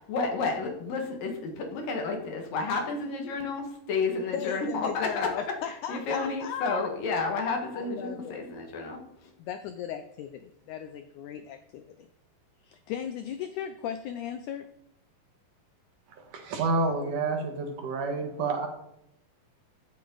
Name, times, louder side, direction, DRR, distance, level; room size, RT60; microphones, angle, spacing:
voice 1, 0.0-9.3, left 4 dB, 70° left, 3 dB, 3.5 m, -31 dB
voice 2, 4.3-6.9 7.7-8.4 9.4-12.1 12.6-14.7, left 9 dB, 85° left, 9 dB, 1.7 m, -37 dB
voice 3, 16.3-18.7, right 3 dB, 65° right, 4 dB, 2.8 m, -29 dB
15.0 x 8.5 x 3.9 m, 0.79 s
omnidirectional pair, 4.2 m